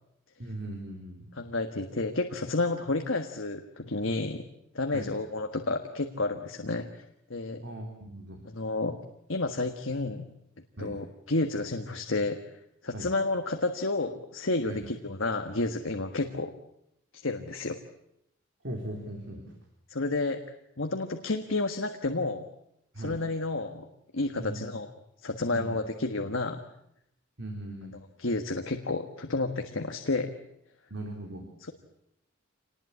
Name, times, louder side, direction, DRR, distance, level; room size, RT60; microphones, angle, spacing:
voice 1, 0.4-1.3 4.9-5.1 7.6-8.5 10.8-11.0 12.9-13.1 14.7-14.9 18.6-19.5 22.9-23.2 24.4-24.7 25.5-25.8 27.4-28.0 30.9-31.5, right 1 dB, 60° right, 2 dB, 3.7 m, -39 dB
voice 2, 1.3-4.4 4.7-7.0 7.3-7.6 8.4-9.0 9.3-10.2 10.8-12.4 12.8-16.5 17.1-17.8 19.9-20.4 20.8-22.4 23.0-23.9 24.1-24.9 25.2-26.6 28.2-30.3 31.6-31.7, left 2 dB, 70° left, 5 dB, 1.5 m, -30 dB
27.0 x 19.5 x 8.7 m, 0.79 s
head